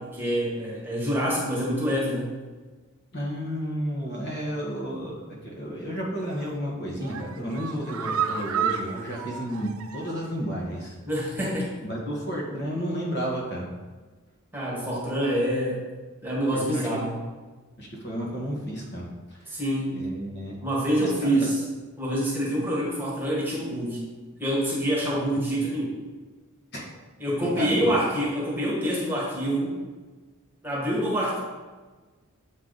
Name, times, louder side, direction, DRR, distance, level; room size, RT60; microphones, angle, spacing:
voice 1, 0.0-2.3 11.0-11.7 14.5-15.8 16.2-17.2 19.5-19.9 20.6-21.6 22.0-24.0 24.4-25.9 27.2-29.8 30.6-31.4, equal, 10° right, -5 dB, 1.5 m, -26 dB
voice 2, 3.1-11.0 11.8-13.7 16.5-16.9 17.8-19.6 19.9-20.6 21.0-21.3 26.7-26.8 27.4-28.0, equal, 50° left, -3 dB, 1.5 m, -32 dB
sound 1, 6.2-6.6 7.0-10.4 10.7-10.8 11.1-11.2, right 7 dB, 75° right, 0.6 m, -32 dB
7.8 x 4.7 x 4.0 m, 1.3 s
head